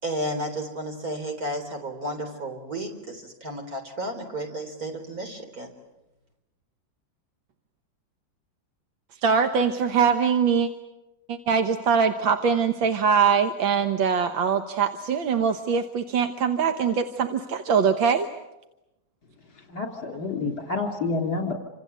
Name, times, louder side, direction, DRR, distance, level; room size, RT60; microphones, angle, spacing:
voice 1, 0.0-5.7, right 1 dB, 45° right, 4 dB, 4.2 m, -32 dB
voice 2, 9.2-10.7 11.3-18.3, right 6 dB, 80° right, 6 dB, 2.0 m, -22 dB
voice 3, 19.7-21.5, left 3 dB, 60° left, 4 dB, 3.8 m, -28 dB
28.0 x 26.0 x 8.1 m, 0.95 s
omnidirectional pair, 2.1 m